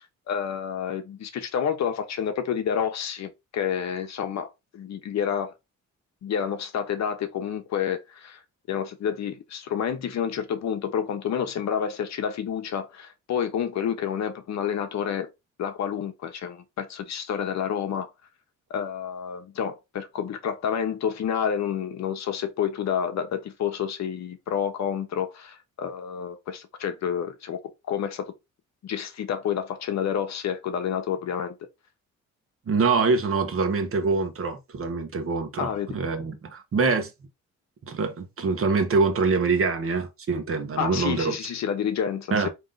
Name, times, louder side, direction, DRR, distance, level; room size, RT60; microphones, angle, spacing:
voice 1, 0.3-5.5 6.2-8.4 8.7-15.3 15.6-18.1 18.7-27.6 27.9-28.3 28.8-31.6 35.6-36.0 40.8-42.5, left 8 dB, 60° left, 0.9 m, -29 dB
voice 2, 32.7-37.1 37.9-41.3 42.3-42.5, right 4 dB, 45° right, 1.1 m, -24 dB
3.7 x 3.1 x 3.8 m
cardioid pair, 90°, 30 cm